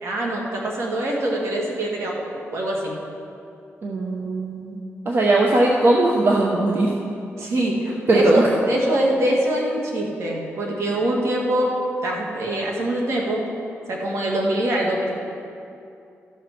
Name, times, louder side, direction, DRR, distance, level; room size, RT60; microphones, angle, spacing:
voice 1, 0.0-2.3 2.5-2.9 7.4-7.8 8.1-11.8 12.0-13.5 13.9-15.1, right 1 dB, 75° right, -2 dB, 1.9 m, -23 dB
voice 2, 3.8-4.8 5.0-6.9 8.1-8.5, right 2 dB, 55° right, -2 dB, 0.9 m, -19 dB
13.5 x 5.2 x 5.9 m, 2.6 s
cardioid pair, 95°, 5 cm